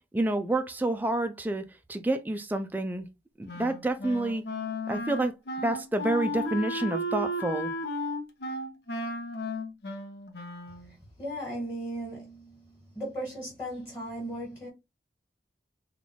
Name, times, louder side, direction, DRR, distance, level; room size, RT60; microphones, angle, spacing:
voice 1, 0.1-3.1 3.4-4.4 4.9-5.3 5.6-7.7, right 2 dB, 10° right, 0.3 m, -28 dB
Wind instrument woodwind instrument, 3.5-10.9, left 1 dB, 65° left, 0.7 m, -34 dB
voice 2, 11.2-14.7, right 1 dB, 15° left, 1.6 m, -37 dB
3.9 x 2.3 x 3.1 m
head